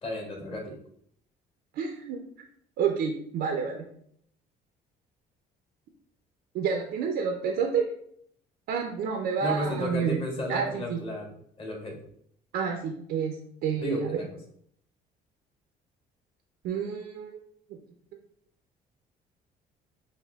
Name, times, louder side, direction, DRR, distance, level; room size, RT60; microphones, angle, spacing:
voice 1, 0.0-0.8 9.4-11.3 11.6-12.0 13.8-14.2, equal, 30° left, -1 dB, 1.6 m, -33 dB
voice 2, 1.8-2.2 2.8-3.9 6.5-7.8 8.7-10.2 10.5-11.0 12.5-13.4 13.6-14.2 16.6-17.4, right 6 dB, 70° right, 2 dB, 0.6 m, -29 dB
5.6 x 2.1 x 3.4 m, 0.67 s
cardioid pair, 110°, 17 cm